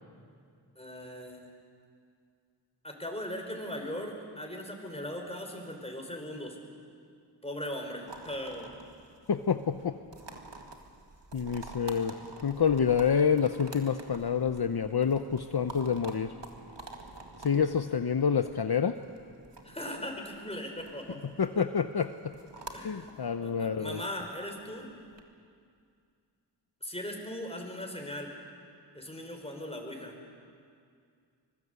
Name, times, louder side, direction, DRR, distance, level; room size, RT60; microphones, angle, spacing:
voice 1, 0.8-1.4 2.8-6.6 7.4-8.7 19.6-21.2 22.7-23.1 23.4-24.9 26.8-28.3 28.9-30.1, left 1 dB, 15° left, 2 dB, 5.2 m, -39 dB
sound 1, 8.1-25.2, right 2 dB, 75° right, 2.2 m, -49 dB
voice 2, 9.3-10.0 11.3-16.3 17.4-18.9 21.2-22.3 22.8-24.0, left 7 dB, 60° left, 9 dB, 0.8 m, -28 dB
25.0 x 21.5 x 8.2 m, 2.3 s
wide cardioid pair, 40°, 43 cm